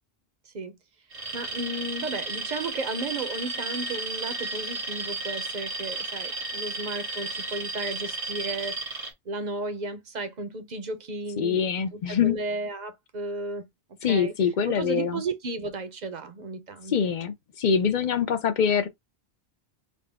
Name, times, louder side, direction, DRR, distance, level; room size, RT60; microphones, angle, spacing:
voice 1, 0.5-0.8 1.3-11.6 11.9-13.7 14.1-14.3 14.6-17.1, right 2 dB, 45° right, 0.7 m, -34 dB
Alarm, 1.1-9.1, right 3 dB, 90° right, 1.4 m, -33 dB
voice 2, 11.4-12.4 14.0-15.2 16.9-18.9, left 7 dB, 50° left, 0.6 m, -24 dB
3.8 x 2.2 x 3.4 m
omnidirectional pair, 1.1 m